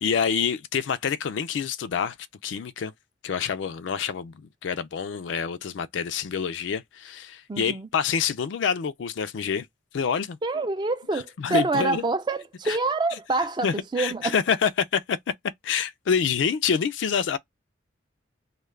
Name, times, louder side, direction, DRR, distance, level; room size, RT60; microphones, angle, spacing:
voice 1, 0.0-2.2 2.4-2.9 3.2-9.7 9.9-10.4 11.4-12.0 12.7-12.8 13.6-15.2 15.6-17.4, left 7 dB, 80° left, 0.4 m, -27 dB
voice 2, 7.5-7.9 10.4-14.4, right 3 dB, 25° right, 0.3 m, -26 dB
2.3 x 2.2 x 3.1 m
head